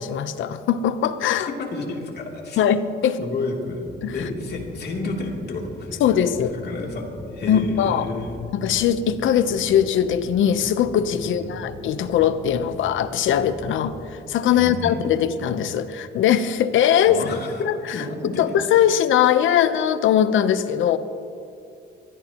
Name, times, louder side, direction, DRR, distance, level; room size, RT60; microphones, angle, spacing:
voice 1, 0.0-1.5 2.6-3.2 4.0-4.2 6.0-6.6 7.5-8.1 8.5-17.2 17.6-17.8 18.4-21.0, left 9 dB, 80° left, 12 dB, 0.9 m, -20 dB
voice 2, 1.6-2.6 3.2-3.8 4.1-6.0 6.5-8.5 11.2-11.5 14.5-15.2 17.1-18.5, left 3 dB, 55° left, 0 dB, 3.1 m, -31 dB
sound 1, 3.8-14.1, left 2 dB, 25° left, 4.8 m, -40 dB
23.0 x 16.5 x 3.0 m, 2.5 s
cardioid pair, 90°, 20 cm